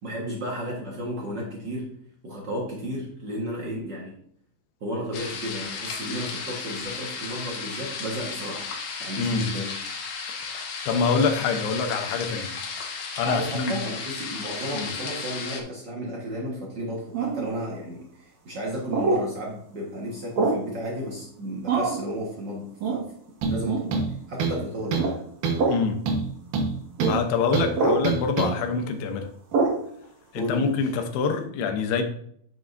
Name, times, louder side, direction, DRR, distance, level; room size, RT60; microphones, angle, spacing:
voice 1, 0.0-1.9 2.2-4.2 4.8-8.7 9.0-9.8 13.2-23.1 23.5-25.2 30.3-30.9, equal, 85° right, -3 dB, 0.9 m, -33 dB
sound 1, 5.1-15.6, left 5 dB, 65° left, 2.2 m, -34 dB
voice 2, 9.2-9.5 10.9-12.5 13.2-13.7 14.7-14.9 25.7-26.0 27.0-29.3 30.3-32.0, left 5 dB, 90° left, 6 dB, 3.0 m, -25 dB
sound 2, 17.1-17.5 18.9-19.2 20.4-20.7 21.7-22.0 22.8-23.0 23.7-23.9 25.0-25.2 25.5-25.8 27.0-27.2 27.7-28.0 29.5-29.8, right 4 dB, 55° right, 2.5 m, -24 dB
sound 3, 23.4-23.6 23.9-24.6 24.9-25.1 25.4-25.7 26.1-27.2 27.5-27.7 28.0-28.5, right 4 dB, 70° right, 3.0 m, -26 dB
9.4 x 7.4 x 2.6 m, 0.64 s
omnidirectional pair, 4.5 m